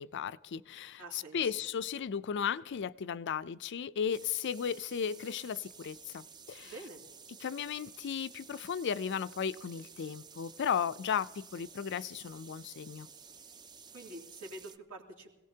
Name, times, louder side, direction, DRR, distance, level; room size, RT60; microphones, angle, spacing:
voice 1, 0.0-6.7 7.4-13.1, left 7 dB, 50° left, 16 dB, 0.4 m, -35 dB
voice 2, 1.0-1.5 6.6-7.0 13.9-15.3, right 2 dB, 75° right, 0 dB, 2.7 m, -47 dB
sound 1, 4.1-14.8, right 6 dB, 20° right, 0.4 m, -53 dB
25.5 x 17.5 x 2.8 m, 1.1 s
head